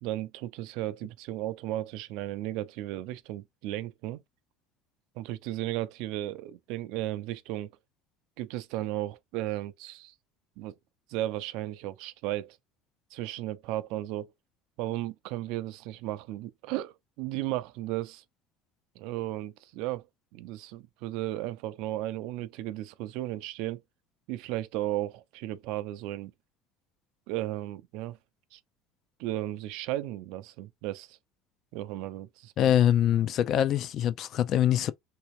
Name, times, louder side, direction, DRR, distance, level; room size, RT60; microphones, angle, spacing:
voice 1, 0.0-4.2 5.2-7.7 8.4-10.1 10.6-10.8 11.1-12.6 13.1-14.3 14.8-18.2 19.0-20.0 20.3-23.8 24.3-26.3 27.3-28.2 28.5-28.6 29.2-31.2 31.7-32.7, right 15 dB, 65° right, 0.4 m, -35 dB
voice 2, 32.6-34.9, left 10 dB, 40° left, 0.3 m, -24 dB
3.4 x 2.7 x 3.0 m
cardioid pair, 165°, 0 cm